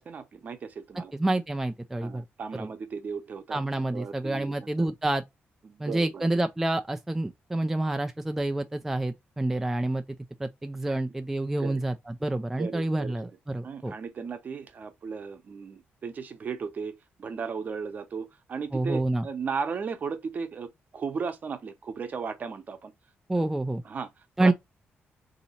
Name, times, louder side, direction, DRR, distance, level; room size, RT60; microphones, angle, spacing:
voice 1, 0.0-1.1 2.0-3.6 3.9-4.9 5.6-6.2 10.9-11.0 11.6-11.8 12.6-13.1 13.6-22.9 23.4-23.5 23.9-24.1 24.4-24.5, right 5 dB, 40° right, 0.8 m, -36 dB
voice 2, 1.1-2.2 2.5-2.7 3.5-5.2 5.8-10.0 10.4-13.9 18.7-19.3 23.3-23.8 24.4-24.5, right 2 dB, 5° right, 0.3 m, -28 dB
4.0 x 2.8 x 4.1 m
cardioid pair, 140°, 4 cm